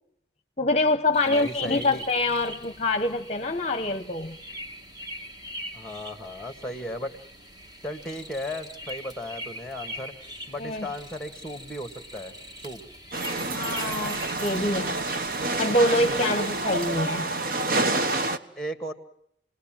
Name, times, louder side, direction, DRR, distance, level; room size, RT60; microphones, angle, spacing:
voice 1, 0.6-4.4 10.6-10.9 13.5-15.0 15.6-17.3, left 2 dB, 35° left, 9 dB, 0.9 m, -25 dB
sound 1, 1.1-17.0, equal, 25° right, 2.0 m, -42 dB
voice 2, 1.2-2.0 5.7-7.1 7.8-10.1 10.5-12.3 12.6-12.8 18.6-18.9, equal, 5° left, 9 dB, 1.9 m, -35 dB
sound 2, 13.1-18.4, right 2 dB, 50° right, 1.2 m, -28 dB
29.0 x 20.0 x 7.6 m, 0.72 s
head